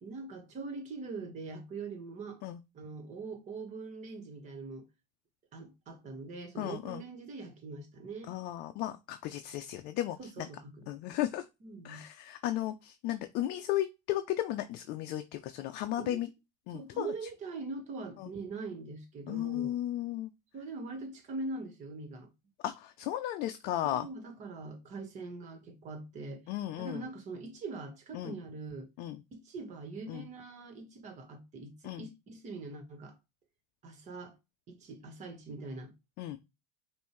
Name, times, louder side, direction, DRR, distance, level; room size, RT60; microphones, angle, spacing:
voice 1, 0.0-2.4 2.7-4.9 5.5-8.3 10.2-11.2 11.6-12.0 16.0-16.2 16.7-19.8 20.5-22.3 23.8-26.4 26.8-28.9 29.3-33.2 33.8-34.4 34.7-35.9, right 3 dB, 35° right, 1.5 m, -42 dB
voice 2, 6.6-7.0 8.3-10.5 10.9-11.4 11.8-16.3 16.7-17.1 18.2-18.3 19.3-20.3 22.6-24.1 26.5-27.0 28.1-28.3 29.0-29.2 30.1-30.3 31.8-32.1 36.2-36.4, left 13 dB, 50° left, 0.5 m, -35 dB
5.4 x 2.6 x 3.1 m
supercardioid pair, 130°, 20 cm